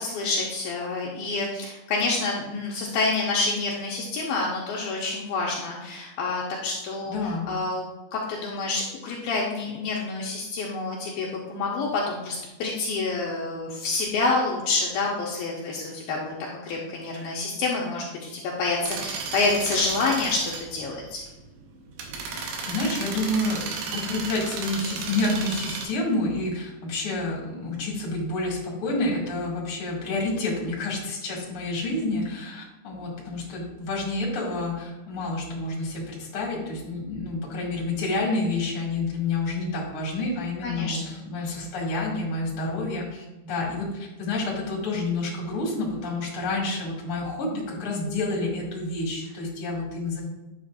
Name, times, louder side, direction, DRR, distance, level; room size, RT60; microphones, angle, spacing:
voice 1, 0.0-16.3 16.6-21.2 40.6-41.1, left 3 dB, 75° left, -3 dB, 2.5 m, -28 dB
voice 2, 7.1-7.5 22.3-23.6 23.9-50.2, left 2 dB, 40° left, -3 dB, 2.5 m, -29 dB
sound 1, 18.8-25.9, right 5 dB, 75° right, 3.0 m, -34 dB
9.4 x 7.4 x 2.5 m, 1.0 s
omnidirectional pair, 4.7 m